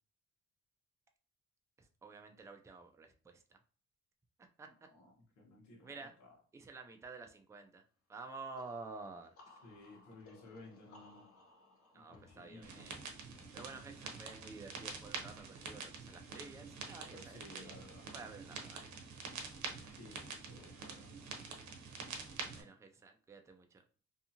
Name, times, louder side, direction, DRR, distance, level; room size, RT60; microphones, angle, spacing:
voice 1, 1.8-3.6 4.6-4.7 5.8-6.1 6.5-7.8 8.1-9.3 11.9-13.0 13.5-17.8 18.1-18.9 22.3-23.8, right 3 dB, 10° right, 5 dB, 0.4 m, -51 dB
voice 2, 4.9-6.3 9.6-11.3 11.9-12.9 17.1-18.1 19.9-21.1, left 2 dB, 75° left, -3 dB, 1.1 m, -56 dB
sound 1, 8.6-14.1, left 2 dB, 50° left, 0.9 m, -63 dB
sound 2, 12.6-22.6, right 4 dB, 70° right, 0.7 m, -46 dB
2.7 x 2.4 x 2.7 m, 0.39 s
cardioid pair, 90°, 30 cm